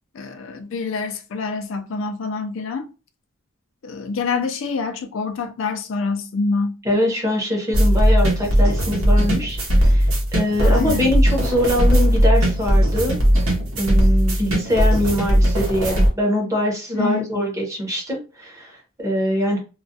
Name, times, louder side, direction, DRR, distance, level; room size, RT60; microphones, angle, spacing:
voice 1, 0.1-2.9 3.8-6.8 10.6-11.1 16.9-17.2, left 4 dB, 65° left, 0.4 m, -26 dB
voice 2, 6.8-13.2 13.8-19.6, left 1 dB, 15° right, 0.8 m, -23 dB
sound 1, 7.7-16.1, equal, 80° right, 0.9 m, -18 dB
2.4 x 2.1 x 2.6 m
head